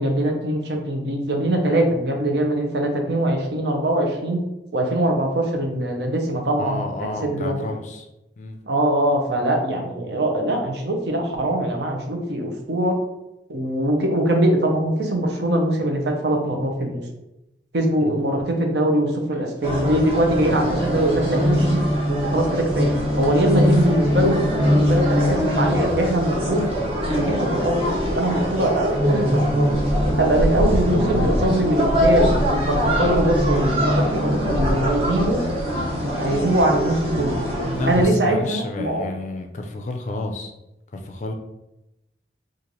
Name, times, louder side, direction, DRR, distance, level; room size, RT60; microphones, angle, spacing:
voice 1, 0.0-4.4 4.7-6.8 7.2-7.6 8.7-13.0 13.5-17.0 17.7-21.8 22.1-22.9 23.2-26.7 27.1-27.8 28.2-29.7 30.2-35.4 36.2-37.4 37.9-39.1, right 1 dB, 65° right, 2 dB, 0.7 m, -22 dB
voice 2, 6.6-8.1 8.4-8.6 18.0-18.2 37.8-40.5 40.9-41.3, left 2 dB, 40° left, 4 dB, 0.4 m, -30 dB
sound 1, 19.6-38.1, equal, 30° right, 0.8 m, -22 dB
3.1 x 2.5 x 3.9 m, 0.90 s
head